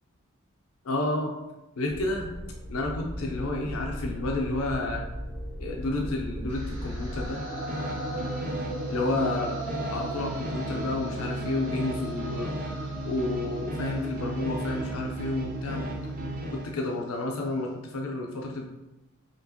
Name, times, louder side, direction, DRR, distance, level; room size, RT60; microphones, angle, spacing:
voice 1, 0.8-1.3 1.8-2.3 2.7-5.0 5.6-7.4 8.9-9.6 9.9-15.9 16.5-18.7, left 2 dB, 80° left, 1 dB, 0.5 m, -31 dB
sound 1, 1.8-7.3, equal, ahead, 1.0 m, -37 dB
sound 2, 6.5-16.6, right 1 dB, 60° right, 1.3 m, -39 dB
sound 3, 7.2-16.7, right 1 dB, 45° right, 0.5 m, -34 dB
4.4 x 2.9 x 2.9 m, 0.98 s
head